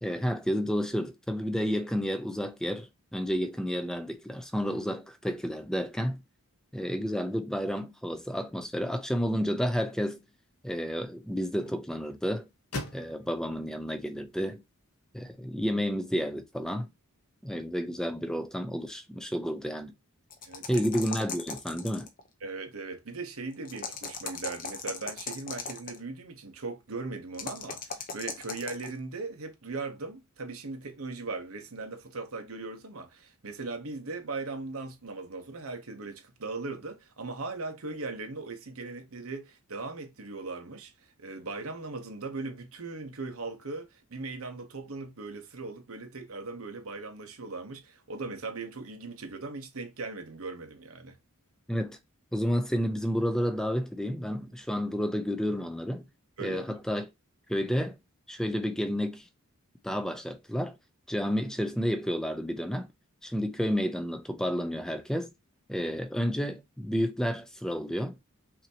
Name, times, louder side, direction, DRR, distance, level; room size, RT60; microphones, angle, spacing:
voice 1, 0.0-6.2 6.7-10.2 10.6-12.5 12.9-14.6 15.1-16.9 17.4-19.9 20.7-22.1 51.7-52.0 52.3-56.1 56.4-57.1 57.5-58.0 58.3-59.3 59.8-60.8 61.1-62.9 63.2-65.3 65.7-68.2, equal, 5° left, 0.5 m, -31 dB
sound 1, 9.2-15.3, left 1 dB, 85° left, 1.1 m, -46 dB
sound 2, 20.3-22.2 23.6-26.0 27.3-28.9, left 5 dB, 40° left, 0.9 m, -38 dB
voice 2, 20.4-20.9 22.4-40.9 41.2-51.2 56.4-56.8, right 3 dB, 70° right, 1.0 m, -39 dB
5.8 x 2.9 x 2.8 m
head